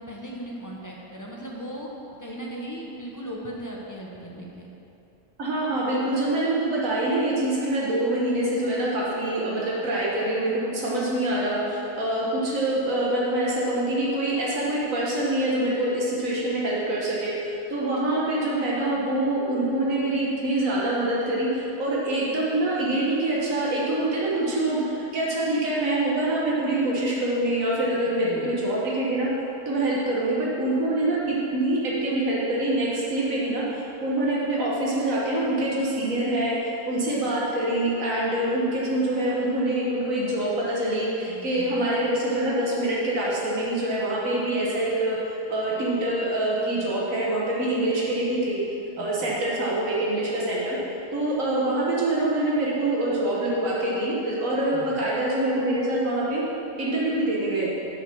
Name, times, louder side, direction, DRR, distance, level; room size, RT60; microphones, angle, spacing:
voice 1, 0.0-1.9 2.2-4.7 28.2-28.6 41.3-41.9 49.0-49.3 54.7-55.1, right 1 dB, 15° left, -3 dB, 1.1 m, -38 dB
voice 2, 5.4-29.3 29.7-36.6 36.9-45.2 45.5-48.6 49.0-50.8 51.1-56.4 56.8-57.7, right 1 dB, 85° right, -6 dB, 1.8 m, -25 dB
7.7 x 6.9 x 6.3 m, 2.9 s
omnidirectional pair, 1.4 m